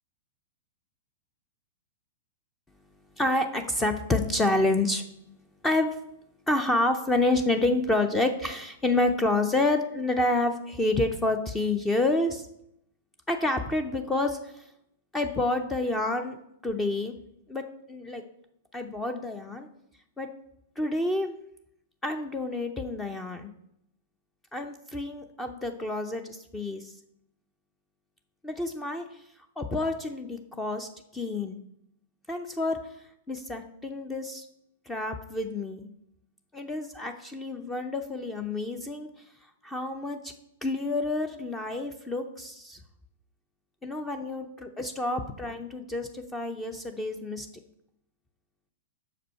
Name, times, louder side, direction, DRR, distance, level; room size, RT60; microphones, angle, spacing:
voice 1, 3.2-5.0 5.6-5.9 6.5-12.5 13.3-14.6 15.1-16.4 16.6-17.1 17.5-17.6 17.9-18.2 18.7-19.7 20.2-20.3 20.8-21.4 22.0-23.5 24.5-26.9 28.4-29.2 29.6-31.6 32.3-32.8 33.3-34.5 34.9-35.8 36.5-39.1 39.6-40.2 40.6-42.8 43.8-47.5, left 2 dB, 10° left, 7 dB, 0.5 m, -28 dB
6.2 x 5.0 x 5.5 m, 0.77 s
hypercardioid pair, 110°, 0 cm